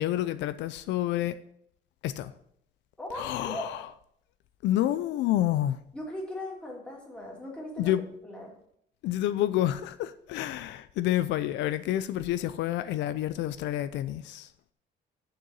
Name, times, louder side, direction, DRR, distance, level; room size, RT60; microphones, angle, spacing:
voice 1, 0.0-1.4 2.0-2.3 3.1-3.9 4.6-5.8 7.8-8.0 9.0-14.5, left 13 dB, 85° left, 0.5 m, -29 dB
voice 2, 3.0-3.7 5.9-7.9 8.2-8.5, left 1 dB, 5° left, 2.6 m, -38 dB
6.7 x 6.7 x 7.7 m
cardioid pair, 155°, 18 cm